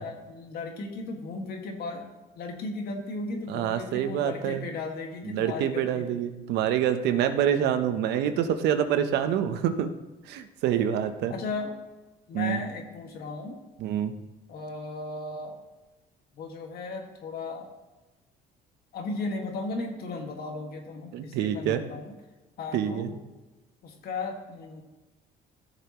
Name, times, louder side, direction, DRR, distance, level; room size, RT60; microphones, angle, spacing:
voice 1, 0.0-6.1 11.3-11.7 12.3-13.6 14.5-15.6 16.4-17.7 18.9-22.1 22.6-23.1 23.8-24.8, left 3 dB, 65° left, 2 dB, 1.9 m, -36 dB
voice 2, 3.5-4.7 5.2-9.9 10.3-11.3 12.3-12.6 13.8-14.1 21.1-21.8 22.7-23.1, right 9 dB, 80° right, 9 dB, 0.9 m, -26 dB
15.0 x 6.9 x 3.0 m, 1.1 s
cardioid pair, 110°, 17 cm